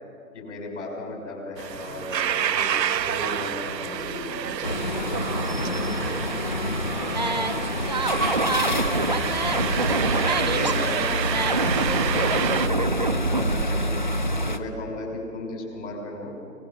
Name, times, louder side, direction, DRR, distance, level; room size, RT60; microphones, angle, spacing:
voice 1, 0.3-2.7 3.1-4.3 5.5-6.1 8.6-9.0 9.8-14.0 14.5-16.3, left 2 dB, 45° left, 1 dB, 5.9 m, -35 dB
sound 1, 1.6-12.7, right 9 dB, 80° right, 0.7 m, -29 dB
voice 2, 3.6-8.9, equal, 5° left, -2 dB, 1.1 m, -42 dB
sound 2, 4.6-14.6, left 1 dB, 30° left, 0.6 m, -28 dB
sound 3, 7.2-7.5 7.9-13.7, right 3 dB, 25° right, 0.6 m, -26 dB
24.0 x 20.5 x 5.9 m, 2.4 s
hypercardioid pair, 165°, 49 cm